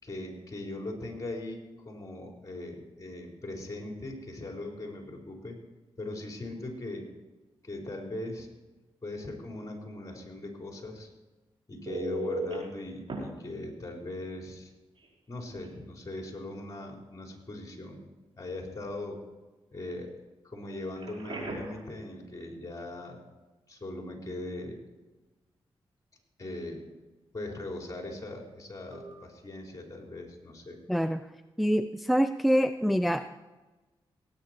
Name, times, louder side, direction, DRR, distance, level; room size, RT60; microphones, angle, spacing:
voice 1, 0.0-5.6 6.0-7.1 7.6-8.5 9.0-11.1 11.7-14.7 15.3-18.0 18.4-19.2 19.7-20.1 20.4-23.2 23.7-24.8 26.4-26.9 27.3-30.8, left 1 dB, 35° left, 1 dB, 4.2 m, -40 dB
Telephone, 11.9-12.5 13.1-13.2 15.0-15.1 15.5-15.7 21.0-21.8 28.9-29.1, right 1 dB, 60° right, 4.9 m, -35 dB
voice 2, 30.9-31.2 31.6-33.3, equal, ahead, 11 dB, 0.5 m, -25 dB
18.5 x 9.4 x 4.5 m, 1.1 s
cardioid pair, 55°, 10 cm